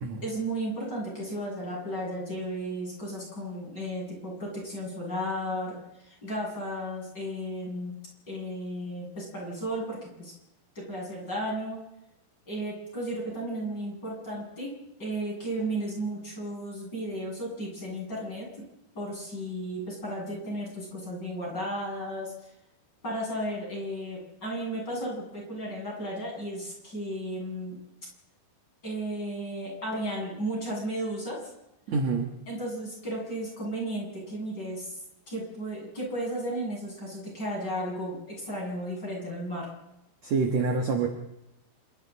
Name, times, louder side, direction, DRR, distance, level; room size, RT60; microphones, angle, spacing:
voice 1, 0.2-7.9 8.3-10.3 10.7-11.8 12.5-14.7 15.0-18.5 18.9-22.5 23.0-27.8 28.8-31.4 32.5-35.0 35.3-39.7, right 1 dB, 20° left, -2 dB, 8.4 m, -34 dB
voice 2, 31.9-32.3 40.2-41.1, right 4 dB, 55° right, 3 dB, 2.1 m, -26 dB
28.0 x 23.0 x 4.2 m, 0.88 s
omnidirectional pair, 5.0 m